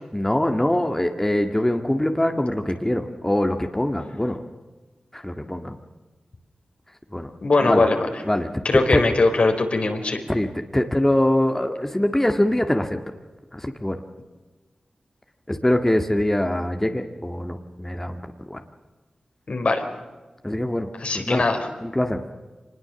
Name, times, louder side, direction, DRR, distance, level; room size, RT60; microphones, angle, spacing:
voice 1, 0.1-4.4 5.1-5.8 7.1-7.3 7.6-7.9 8.3-9.0 10.3-13.0 13.5-14.0 15.5-18.2 18.5-18.6 20.4-20.9 21.3-21.5 21.8-22.2, left 1 dB, 15° left, 5 dB, 1.9 m, -23 dB
voice 2, 7.4-8.0 8.6-10.2 19.5-19.8 21.0-21.6, left 3 dB, 65° left, 4 dB, 4.2 m, -20 dB
25.0 x 20.5 x 7.1 m, 1.3 s
cardioid pair, 55°, 2 cm